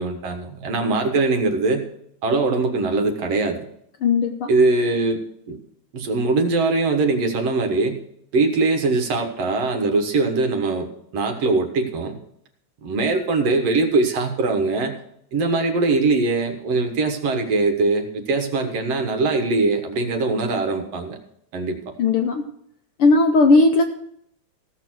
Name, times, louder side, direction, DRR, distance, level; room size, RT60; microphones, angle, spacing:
voice 1, 0.0-1.8 2.2-3.6 4.5-5.2 5.5-5.6 5.9-8.0 8.3-12.2 12.8-15.0 15.3-21.2 21.5-21.8, right 3 dB, 60° right, 5 dB, 2.4 m, -21 dB
voice 2, 4.0-4.5 22.0-22.5 23.0-23.8, left 3 dB, 70° left, 4 dB, 1.4 m, -16 dB
16.0 x 6.9 x 6.2 m, 0.71 s
omnidirectional pair, 3.4 m